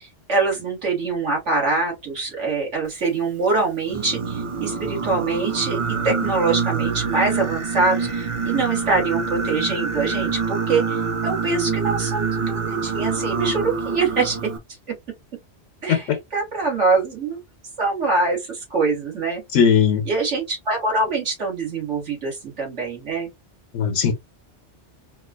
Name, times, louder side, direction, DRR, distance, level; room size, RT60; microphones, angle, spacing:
voice 1, 0.0-5.8 6.0-11.0 11.2-14.4 15.8-17.4 17.8-19.4 20.1-23.3, right 3 dB, 75° right, 2.1 m, -24 dB
Singing, 3.9-14.6, right 5 dB, 35° right, 0.5 m, -26 dB
voice 2, 19.5-20.1 23.7-24.1, left 7 dB, 85° left, 1.1 m, -18 dB
4.4 x 2.4 x 2.4 m
omnidirectional pair, 1.2 m